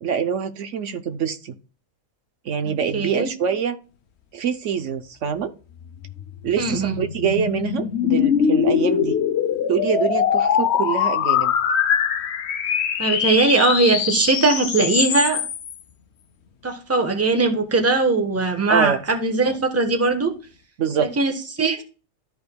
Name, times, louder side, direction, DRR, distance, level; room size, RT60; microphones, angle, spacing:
voice 1, 0.0-1.5 2.4-3.8 4.3-5.5 6.4-9.1 9.7-11.6 18.7-19.0 20.8-21.1, right 7 dB, 70° right, 9 dB, 1.0 m, -25 dB
voice 2, 2.6-3.3 6.6-7.0 13.0-15.4 16.6-20.3 21.0-21.8, right 3 dB, 10° right, 6 dB, 1.0 m, -20 dB
sound 1, 6.0-15.7, left 7 dB, 60° left, 0.9 m, -22 dB
13.0 x 5.1 x 2.2 m, 0.36 s
omnidirectional pair, 1.4 m